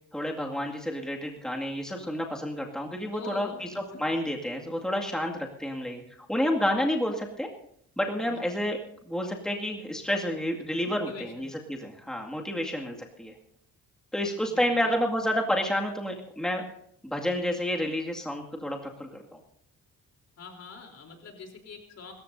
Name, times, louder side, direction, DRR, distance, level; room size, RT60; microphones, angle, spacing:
voice 1, 0.1-6.0 6.3-7.5 8.0-8.8 9.0-13.3 14.1-16.6 17.0-19.4, equal, ahead, 0 dB, 2.1 m, -30 dB
voice 2, 3.1-3.6 3.9-4.2 8.2-8.6 10.8-11.5 14.5-14.9 20.4-22.1, left 4 dB, 55° left, 2 dB, 3.6 m, -44 dB
25.5 x 14.0 x 2.7 m, 0.71 s
cardioid pair, 90°, 30 cm